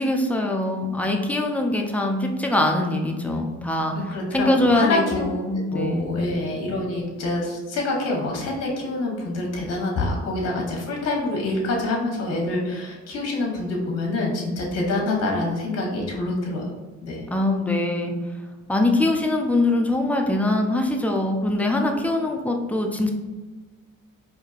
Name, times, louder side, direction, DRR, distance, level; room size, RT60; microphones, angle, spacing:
voice 1, 0.0-4.0 4.3-6.2 17.3-18.1 18.7-23.1, left 2 dB, 5° left, 1 dB, 0.5 m, -23 dB
voice 2, 3.9-5.2 5.5-16.7 17.0-17.3, left 2 dB, 55° left, -1 dB, 1.1 m, -26 dB
4.4 x 2.8 x 2.4 m, 1.3 s
cardioid pair, 90°, 30 cm